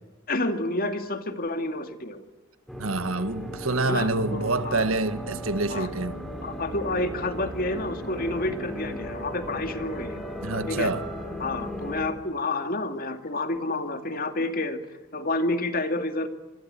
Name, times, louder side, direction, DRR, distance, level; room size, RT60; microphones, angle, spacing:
voice 1, 0.3-2.2 3.9-4.9 5.7-5.9 6.4-10.2 10.7-10.9 11.4-14.8 15.1-16.3, left 2 dB, 45° left, 2.4 m, -29 dB
sound 1, 2.7-12.1, equal, ahead, 4.7 m, -36 dB
voice 2, 2.8-6.1 10.4-11.0, right 2 dB, 75° right, 1.5 m, -27 dB
26.5 x 24.0 x 9.1 m
head